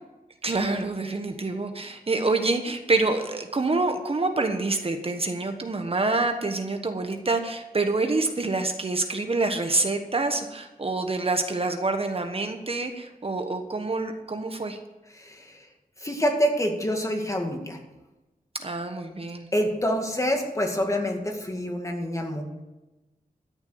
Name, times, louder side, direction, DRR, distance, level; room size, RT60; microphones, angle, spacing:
voice 1, 0.4-14.8 18.6-19.5, right 3 dB, 40° right, 6 dB, 1.2 m, -27 dB
voice 2, 15.1-15.7 16.0-17.8 19.5-22.4, equal, 20° left, 3 dB, 2.1 m, -26 dB
13.0 x 7.1 x 7.8 m, 1.0 s
wide cardioid pair, 95°, 15 cm